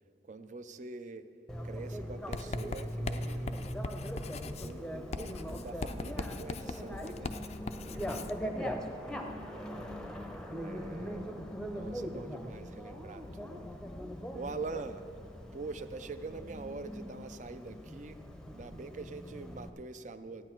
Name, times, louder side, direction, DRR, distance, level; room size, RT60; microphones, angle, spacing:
voice 1, 0.2-1.3 1.6-3.8 4.6-7.3 10.6-11.4 11.7-13.8 14.3-15.0 15.5-20.4, right 3 dB, 45° right, 10 dB, 0.5 m, -44 dB
Bicycle, 1.5-19.7, equal, 5° left, 0.7 m, -41 dB
Writing, 2.3-8.4, left 3 dB, 35° left, 0.4 m, -40 dB
voice 2, 7.6-11.9 14.2-14.4, right 1 dB, 75° right, 1 dB, 1.5 m, -56 dB
15.0 x 9.8 x 4.5 m, 2.3 s
head